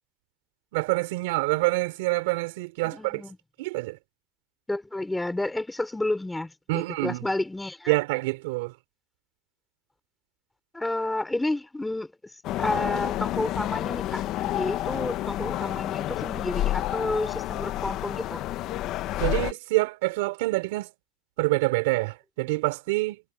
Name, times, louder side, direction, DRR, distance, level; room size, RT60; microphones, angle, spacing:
voice 1, 0.7-3.2 3.6-4.0 6.7-7.2 7.9-8.7 19.2-20.9 21.4-23.2, right 23 dB, 65° right, 4.3 m, -26 dB
voice 2, 2.8-3.4 4.7-7.9 10.7-12.3 12.6-18.4, left 2 dB, 5° left, 4.6 m, -31 dB
sound 1, 12.4-19.5, left 14 dB, 40° left, 1.0 m, -29 dB
supercardioid pair, 155°, 0 cm